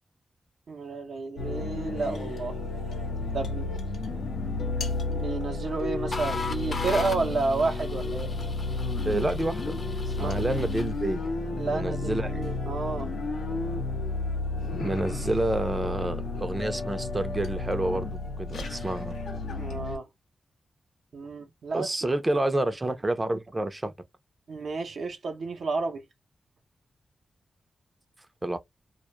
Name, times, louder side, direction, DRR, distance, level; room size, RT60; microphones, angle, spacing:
voice 1, 0.7-2.6 3.3-3.7 5.1-8.3 10.2-10.4 11.6-13.1 19.5-20.1 21.1-22.2 24.5-26.0, right 4 dB, 70° right, 0.6 m, -31 dB
sound 1, 1.4-20.0, left 3 dB, 90° left, 0.7 m, -32 dB
sound 2, 6.1-11.0, left 4 dB, 40° left, 0.6 m, -38 dB
voice 2, 9.1-9.8 10.2-11.2 11.6-12.4 14.8-19.2 21.7-23.9 28.4-28.6, right 1 dB, 20° right, 0.5 m, -29 dB
2.2 x 2.0 x 2.8 m
cardioid pair, 85°, 0 cm